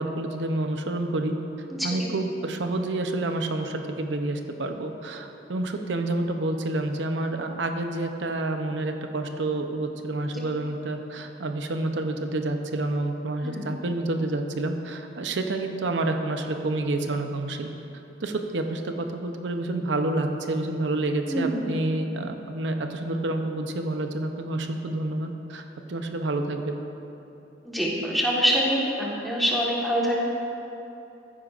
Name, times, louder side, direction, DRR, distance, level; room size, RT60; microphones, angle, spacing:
voice 1, 0.0-1.3 1.8-17.7 18.2-25.6 25.9-26.8, right 2 dB, 75° right, 5 dB, 0.7 m, -28 dB
voice 2, 1.7-2.1 13.5-13.6 21.3-21.7 27.6-30.3, equal, ahead, -5 dB, 1.4 m, -25 dB
14.5 x 9.7 x 2.5 m, 2.9 s
head